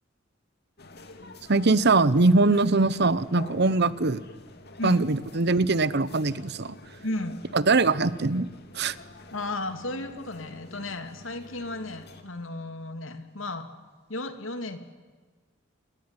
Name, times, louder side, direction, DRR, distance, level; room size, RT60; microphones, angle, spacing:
sound 1, 0.8-12.2, left 2 dB, 55° left, 2.7 m, -48 dB
voice 1, 1.5-4.2 4.8-6.7 7.5-8.5 8.7-8.9, right 3 dB, 55° right, 17 dB, 0.9 m, -22 dB
voice 2, 4.8-5.1 7.0-7.4 9.3-13.7 14.1-14.8, left 2 dB, 75° left, 8 dB, 2.6 m, -34 dB
28.0 x 20.5 x 9.8 m, 1.4 s
head